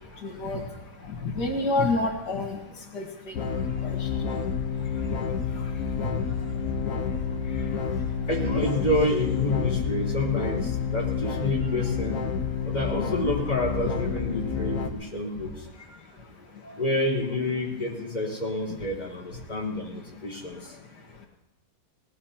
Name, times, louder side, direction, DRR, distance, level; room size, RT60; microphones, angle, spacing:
voice 1, 0.2-0.6 1.0-2.6 2.9-3.4 3.8-4.1 16.6-16.8, left 2 dB, 85° left, 1 dB, 2.2 m, -28 dB
sound 1, 3.3-14.9, left 6 dB, 55° left, 1.4 m, -29 dB
voice 2, 6.0-6.5 8.3-12.2 12.7-15.5 16.7-20.6, left 1 dB, 25° left, -4 dB, 4.6 m, -28 dB
19.5 x 19.5 x 2.9 m, 0.99 s
omnidirectional pair, 1.8 m